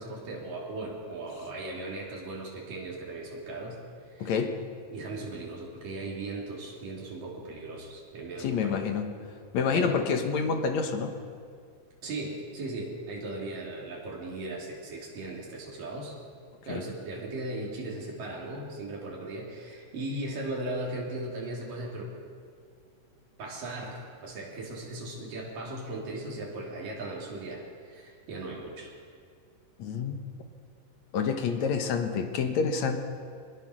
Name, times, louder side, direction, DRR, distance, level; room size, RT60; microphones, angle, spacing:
voice 1, 0.0-3.8 4.1-4.3 4.9-8.9 9.7-10.0 12.0-16.2 16.6-22.1 23.4-28.9, right 2 dB, 85° right, -3 dB, 5.0 m, -37 dB
voice 2, 4.2-4.6 8.4-9.2 9.5-11.1 16.7-16.9 29.8-30.2 31.1-33.0, left 5 dB, 65° left, 5 dB, 2.4 m, -28 dB
22.0 x 20.0 x 6.3 m, 2.1 s
omnidirectional pair, 3.8 m